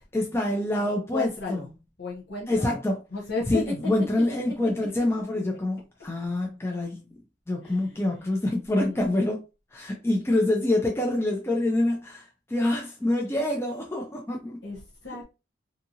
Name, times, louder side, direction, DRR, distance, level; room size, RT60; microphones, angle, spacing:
voice 1, 0.1-1.7 2.5-3.0 3.5-7.2 7.5-9.4 9.7-14.6, left 1 dB, 15° left, 0.4 m, -26 dB
voice 2, 0.8-1.7 2.0-2.8 3.1-3.6 4.0-4.7 7.6-8.3 8.9-9.0 14.6-15.2, left 4 dB, 70° left, 0.8 m, -34 dB
2.7 x 2.4 x 2.7 m
head